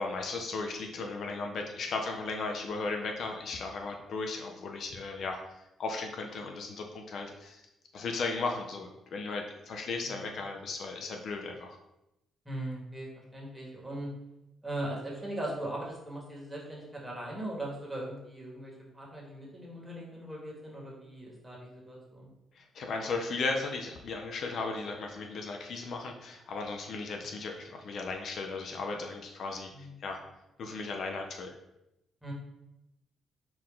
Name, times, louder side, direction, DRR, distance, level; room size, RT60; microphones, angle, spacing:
voice 1, 0.0-5.4 5.8-7.6 7.9-11.8 22.6-30.2 30.6-31.6, left 3 dB, 60° left, 3 dB, 0.5 m, -36 dB
voice 2, 12.4-14.1 14.6-22.3 29.7-30.0 32.2-32.3, right 1 dB, 10° right, -3 dB, 1.5 m, -39 dB
4.6 x 2.6 x 3.7 m, 0.89 s
cardioid pair, 90°, 0 cm